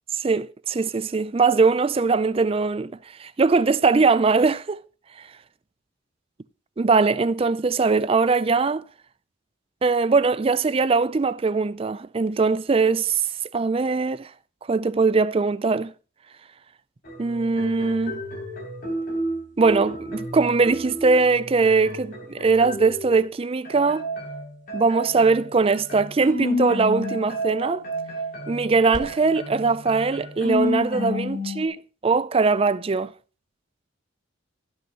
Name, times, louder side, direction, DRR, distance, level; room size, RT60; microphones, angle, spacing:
voice 1, 0.1-2.9 3.2-4.8 6.8-8.8 9.8-13.2 13.5-14.3 14.7-15.9 17.2-18.2 19.6-24.1 24.7-27.8 28.5-31.8 32.0-33.1, right 4 dB, 30° right, 0.4 m, -21 dB
sound 1, 17.0-23.3 23.6-31.7, left 1 dB, 45° left, 3.7 m, -31 dB
17.0 x 6.2 x 2.9 m
head